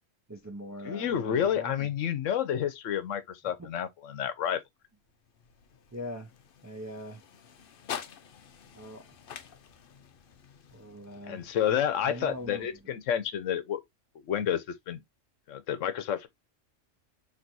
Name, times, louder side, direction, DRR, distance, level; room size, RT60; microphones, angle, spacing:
voice 1, 0.3-1.9 3.6-3.7 5.9-6.3 6.6-7.2 8.7-9.1 10.7-11.4 12.0-12.8, equal, 25° right, 0.3 m, -41 dB
voice 2, 0.8-4.6 11.3-13.8 14.3-15.0 15.5-16.3, left 9 dB, 75° left, 1.0 m, -30 dB
sound 1, 4.9-13.1, left 8 dB, 55° left, 0.7 m, -47 dB
6.0 x 3.0 x 2.5 m
omnidirectional pair, 1.3 m